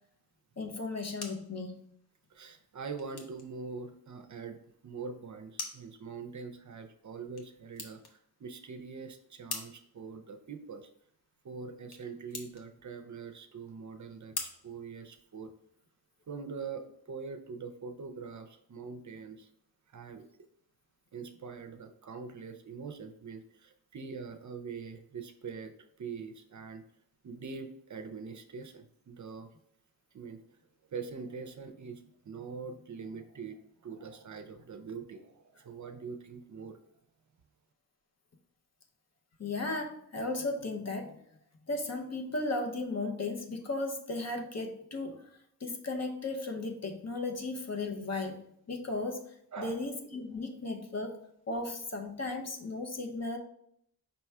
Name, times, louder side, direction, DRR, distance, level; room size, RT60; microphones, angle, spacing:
voice 1, 0.6-1.8 39.4-41.2 41.7-48.4 48.7-51.2 51.5-53.4, left 2 dB, 45° left, 3 dB, 0.7 m, -36 dB
sound 1, 0.7-15.7, left 3 dB, 85° left, 0.9 m, -48 dB
voice 2, 2.3-4.6 4.8-10.9 11.4-15.5 16.3-19.5 19.9-20.5 21.1-26.8 27.2-29.5 30.1-30.4 30.9-36.8 49.5-50.0, right 5 dB, 50° right, 7 dB, 0.5 m, -43 dB
5.4 x 2.3 x 4.3 m, 0.71 s
wide cardioid pair, 100°, 37 cm